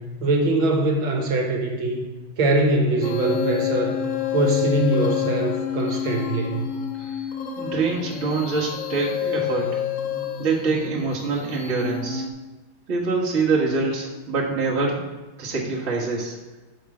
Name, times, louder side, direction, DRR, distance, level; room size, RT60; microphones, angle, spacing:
voice 1, 0.0-2.0 2.4-4.0 4.3-6.7, right 2 dB, 75° right, 1 dB, 1.8 m, -22 dB
sound 1, 3.0-12.3, left 9 dB, 80° left, 0.7 m, -28 dB
voice 2, 7.6-9.8 10.4-12.2 12.9-15.1 15.4-16.4, right 4 dB, 35° right, -4 dB, 1.5 m, -25 dB
5.4 x 5.3 x 5.9 m, 1.2 s
omnidirectional pair, 2.2 m